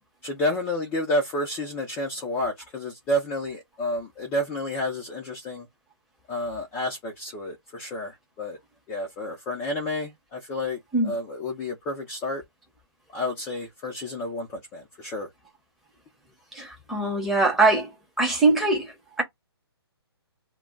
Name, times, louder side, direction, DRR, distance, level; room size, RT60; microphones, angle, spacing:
voice 1, 0.2-5.7 6.3-8.6 8.9-12.4 13.1-15.3, left 1 dB, 15° left, 0.5 m, -30 dB
voice 2, 16.5-17.9 18.2-19.2, right 2 dB, ahead, 0.8 m, -22 dB
2.2 x 2.1 x 3.7 m
hypercardioid pair, 155°, 14 cm